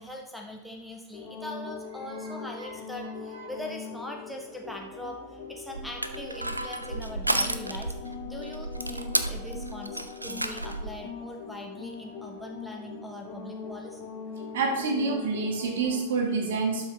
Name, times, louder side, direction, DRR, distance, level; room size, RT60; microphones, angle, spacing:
voice 1, 0.0-14.0, left 1 dB, ahead, 0 dB, 1.1 m, -41 dB
sound 1, 1.1-16.0, left 5 dB, 40° left, 1.9 m, -41 dB
Crushing, 5.7-10.9, right 2 dB, 85° right, 0.5 m, -32 dB
voice 2, 14.5-16.9, right 4 dB, 60° right, 2 dB, 1.8 m, -28 dB
11.5 x 5.7 x 3.2 m, 1.0 s
figure-of-eight pair, 90°, 0 cm